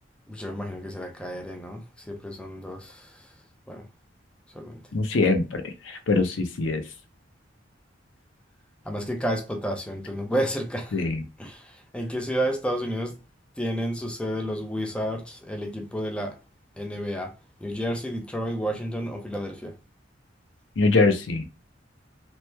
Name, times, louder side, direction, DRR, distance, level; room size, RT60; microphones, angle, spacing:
voice 1, 0.3-3.3 3.7-3.9 4.5-4.8 8.8-11.1 11.4-13.1 13.6-16.4 16.8-17.3 17.6-19.8, equal, 5° left, 0.4 m, -31 dB
voice 2, 4.9-6.8 10.9-11.2 20.8-21.5, left 3 dB, 75° left, 0.6 m, -23 dB
3.0 x 2.1 x 3.2 m
head